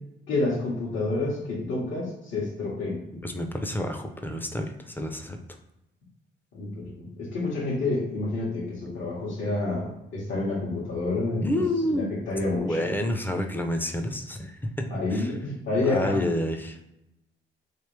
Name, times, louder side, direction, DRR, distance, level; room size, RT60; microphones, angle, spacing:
voice 1, 0.3-3.0 6.5-11.5 12.3-12.8 14.9-16.3, left 2 dB, 75° left, -8 dB, 1.4 m, -28 dB
voice 2, 3.2-5.4 11.4-12.1 12.6-15.3 15.8-16.8, left 1 dB, 10° left, 5 dB, 0.5 m, -29 dB
3.2 x 2.9 x 3.3 m, 0.89 s
cardioid pair, 90°, 20 cm